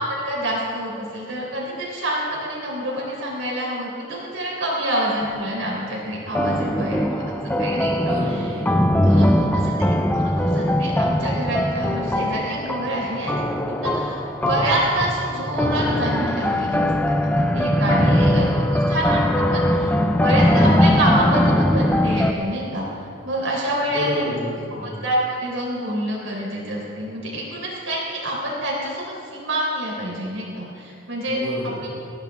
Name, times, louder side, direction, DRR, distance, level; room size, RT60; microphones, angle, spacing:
voice 1, 0.2-7.2 7.6-8.5 9.0-9.3 9.5-9.6 10.1-18.5 18.9-19.9 20.2-24.3 24.8-31.4 31.8-31.9, right 1 dB, 75° right, -4 dB, 3.6 m, -27 dB
sound 1, 5.2-5.7 6.3-22.3, left 1 dB, 10° left, 0.4 m, -20 dB
voice 2, 6.4-7.2 8.0-8.8 9.0-9.6 18.0-18.3 23.9-24.9 31.3-31.9, right 1 dB, 40° right, -6 dB, 3.7 m, -30 dB
19.5 x 10.5 x 3.6 m, 2.6 s
head